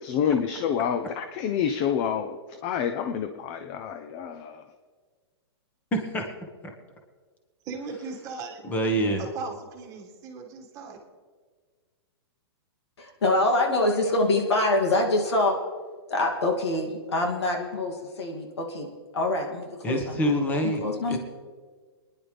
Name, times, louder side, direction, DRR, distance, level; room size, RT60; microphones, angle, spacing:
voice 1, 0.0-4.6, left 8 dB, 30° left, 9 dB, 0.6 m, -28 dB
voice 2, 5.9-6.3 8.6-9.2 19.8-21.2, right 1 dB, 10° left, 3 dB, 1.5 m, -26 dB
voice 3, 7.6-8.6 9.2-11.0, right 4 dB, 25° right, 0 dB, 1.9 m, -38 dB
voice 4, 13.0-15.5 16.1-18.9 19.1-20.3 20.8-21.2, left 2 dB, 90° left, 1 dB, 2.6 m, -25 dB
23.5 x 10.5 x 3.4 m, 1.6 s
hypercardioid pair, 155°, 14 cm